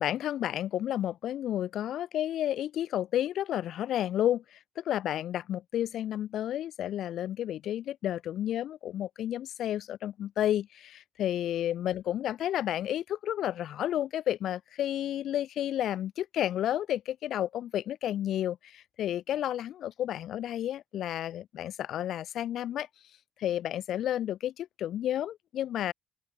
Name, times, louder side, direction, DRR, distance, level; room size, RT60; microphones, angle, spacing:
voice 1, 0.0-22.9 23.4-25.9, left 11 dB, 75° left, 2.5 m, -31 dB
open air
cardioid pair, 90°, 0 cm